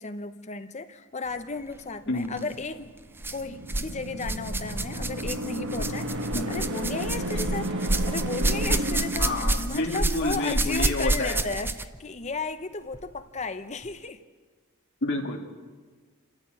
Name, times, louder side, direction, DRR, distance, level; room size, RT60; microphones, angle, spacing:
voice 1, 0.0-3.0 3.3-7.7 8.1-9.3 9.7-14.2, left 3 dB, 30° left, 10 dB, 0.9 m, -34 dB
voice 2, 2.1-2.4 6.3-6.5 9.2-11.4 15.0-15.4, left 2 dB, 55° left, 1 dB, 2.5 m, -29 dB
sound 1, 2.2-2.4 3.2-3.9 4.2-12.0 12.9-13.0 13.8-13.9, right 2 dB, 10° right, 0.5 m, -29 dB
sound 2, 3.2-10.1, right 1 dB, 55° right, 1.3 m, -33 dB
27.0 x 13.5 x 7.8 m, 1.4 s
head